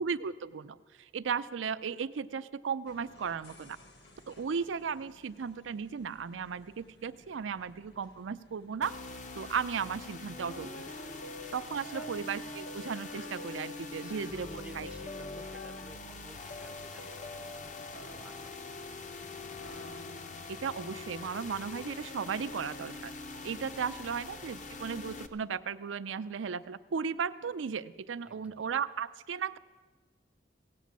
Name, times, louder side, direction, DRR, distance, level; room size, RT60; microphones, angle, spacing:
voice 1, 0.0-3.8 4.3-8.9 9.3-10.8 11.5-14.5 14.7-14.9 20.5-23.1 23.4-29.6, right 6 dB, 85° right, 14 dB, 0.5 m, -35 dB
sound 1, 2.9-20.1, left 1 dB, 60° left, 1.5 m, -61 dB
sound 2, 8.8-25.3, left 3 dB, 40° left, 0.6 m, -44 dB
sound 3, 10.4-21.3, left 1 dB, 80° left, 1.0 m, -48 dB
voice 2, 10.9-12.2 13.9-19.0 28.2-28.7, equal, 5° right, 7 dB, 0.5 m, -55 dB
16.5 x 8.3 x 7.3 m, 1.4 s
head